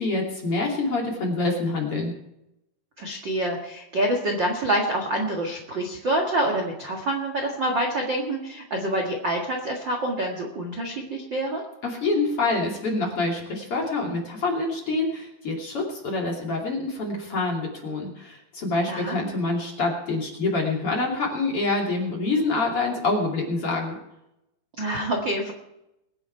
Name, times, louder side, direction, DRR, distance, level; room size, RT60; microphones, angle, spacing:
voice 1, 0.0-2.1 11.8-24.0, left 3 dB, 35° left, -1 dB, 3.0 m, -26 dB
voice 2, 3.0-11.6 18.9-19.1 24.8-25.5, right 1 dB, 45° right, 1 dB, 1.6 m, -26 dB
22.5 x 9.9 x 4.6 m, 0.86 s
omnidirectional pair, 4.9 m